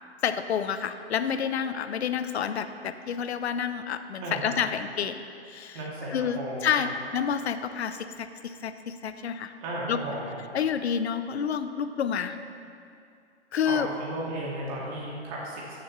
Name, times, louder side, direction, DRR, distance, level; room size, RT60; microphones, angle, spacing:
voice 1, 0.2-5.8 6.1-9.5 9.9-10.0 10.5-12.4 13.5-13.9, left 7 dB, 65° left, 10 dB, 0.7 m, -29 dB
voice 2, 4.2-4.6 5.7-6.9 9.6-10.4 13.6-15.7, right 1 dB, 35° right, -5 dB, 1.9 m, -34 dB
13.0 x 7.0 x 3.1 m, 2.4 s
hypercardioid pair, 130°, 34 cm